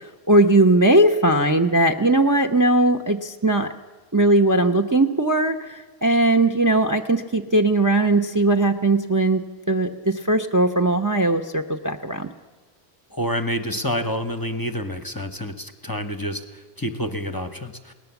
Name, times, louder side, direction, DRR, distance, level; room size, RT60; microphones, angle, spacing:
voice 1, 0.3-3.7 4.1-12.3, right 2 dB, 20° right, 6 dB, 0.7 m, -19 dB
voice 2, 13.1-17.9, equal, 20° left, 9 dB, 0.9 m, -28 dB
21.0 x 18.5 x 7.1 m, 1.2 s
omnidirectional pair, 1.1 m